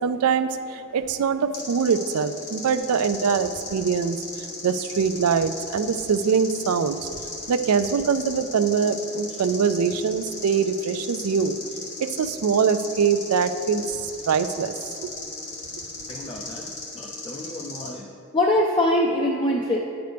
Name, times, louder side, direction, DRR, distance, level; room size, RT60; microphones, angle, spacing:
voice 1, 0.0-7.1 7.5-11.6 12.0-15.2, right 6 dB, 85° right, 12 dB, 0.4 m, -23 dB
sound 1, 1.5-17.9, left 3 dB, 85° left, 2.3 m, -37 dB
voice 2, 16.1-18.1 18.3-19.8, left 1 dB, 25° left, 0 dB, 0.4 m, -24 dB
10.5 x 7.9 x 3.4 m, 2.6 s
head